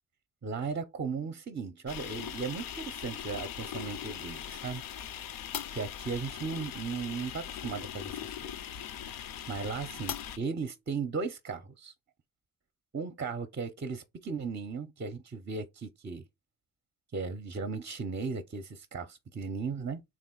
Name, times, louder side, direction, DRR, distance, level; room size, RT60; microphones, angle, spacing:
voice 1, 0.4-4.8 5.7-8.5 8.8-9.0 9.5-11.9 12.9-16.2 17.1-20.0, right 5 dB, 30° right, 0.6 m, -36 dB
sound 1, 1.9-10.4, left 10 dB, 60° left, 0.5 m, -40 dB
3.4 x 2.5 x 3.7 m
supercardioid pair, 45°, 38 cm